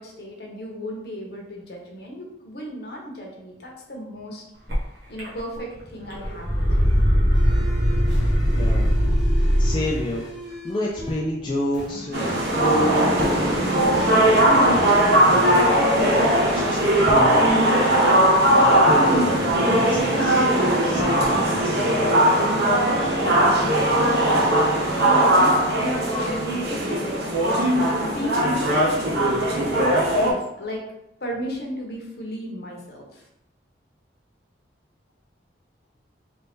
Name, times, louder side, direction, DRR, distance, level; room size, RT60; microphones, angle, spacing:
voice 1, 0.0-4.4 5.1-6.9 21.3-21.9 22.4-24.5 24.7-30.8 31.2-33.3, equal, 55° left, -1 dB, 0.9 m, -35 dB
sound 1, 4.7-4.8 5.2-5.7 6.0-10.0, equal, 80° right, 1.3 m, -20 dB
sound 2, 7.3-11.3 11.7-13.1, equal, 5° right, 0.7 m, -39 dB
voice 2, 8.6-8.9 9.4-14.8 15.1-16.8 17.1-17.6 18.4-20.5 20.8-21.8, left 1 dB, 25° left, -3 dB, 0.4 m, -29 dB
sound 3, 12.1-30.3, right 1 dB, 65° right, 1.0 m, -19 dB
3.3 x 2.6 x 3.5 m, 0.82 s
head